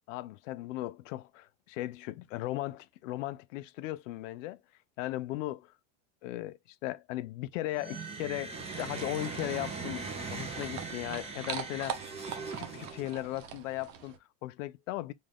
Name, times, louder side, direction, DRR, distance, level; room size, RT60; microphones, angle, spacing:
voice 1, 0.1-4.6 5.0-5.7 6.2-12.0 12.6-15.1, left 16 dB, 85° left, 0.6 m, -37 dB
sound 1, 7.7-13.4, right 4 dB, 15° right, 0.8 m, -40 dB
sound 2, 8.6-14.2, right 9 dB, 85° right, 1.0 m, -43 dB
3.2 x 2.7 x 3.6 m
supercardioid pair, 145°, 38 cm